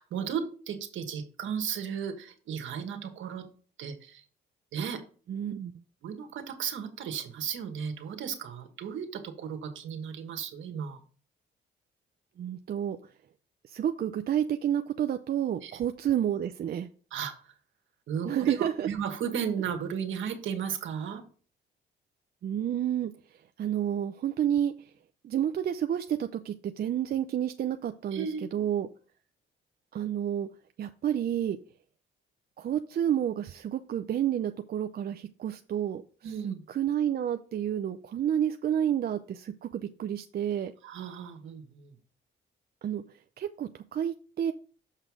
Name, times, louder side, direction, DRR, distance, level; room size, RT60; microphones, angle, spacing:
voice 1, 0.0-3.4 3.8-4.2 4.7-5.0 6.0-11.0 15.6-15.7 17.1-17.5 18.1-21.2 28.1-28.6 36.2-36.6 40.8-41.9, right 7 dB, 75° right, 5 dB, 1.5 m, -35 dB
voice 2, 5.3-5.7 12.4-13.0 13.7-16.9 18.2-18.9 22.4-23.1 23.6-24.7 25.2-28.9 29.9-30.5 30.8-31.6 32.6-36.0 36.4-40.7 42.8-43.0 43.4-44.5, right 10 dB, 50° right, 8 dB, 0.5 m, -30 dB
6.6 x 5.7 x 4.8 m, 0.41 s
cardioid pair, 90°, 20 cm